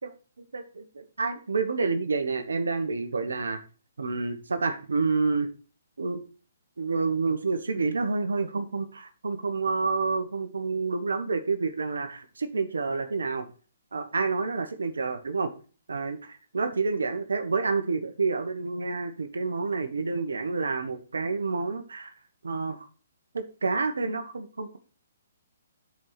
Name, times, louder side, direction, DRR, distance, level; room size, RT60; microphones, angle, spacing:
voice 1, 0.0-3.6 4.0-5.5 6.0-6.2 6.8-13.5 13.9-15.5 15.9-22.1 22.4-22.9 23.3-24.8, right 4 dB, 80° right, 9 dB, 1.3 m, -29 dB
10.0 x 4.7 x 4.1 m, 0.38 s
hypercardioid pair, 140°, 0 cm